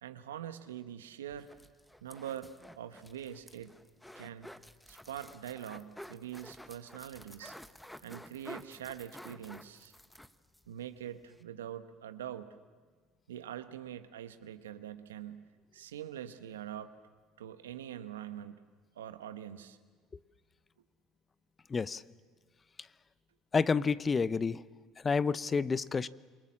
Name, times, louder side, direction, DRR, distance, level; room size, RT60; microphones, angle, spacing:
voice 1, 0.0-1.5 2.0-3.7 4.1-4.5 4.9-7.6 8.0-9.9 10.7-12.5 13.3-16.9 17.4-18.6 18.9-19.8, right 10 dB, 85° right, 10 dB, 1.1 m, -44 dB
sound 1, 1.3-10.7 11.0-11.1 11.3-11.4, left 1 dB, 5° left, 1.0 m, -51 dB
voice 2, 21.7-22.0 23.5-24.6 25.0-26.1, left 5 dB, 30° left, 17 dB, 0.7 m, -29 dB
28.0 x 23.0 x 7.5 m, 1.5 s
hypercardioid pair, 65°, 0 cm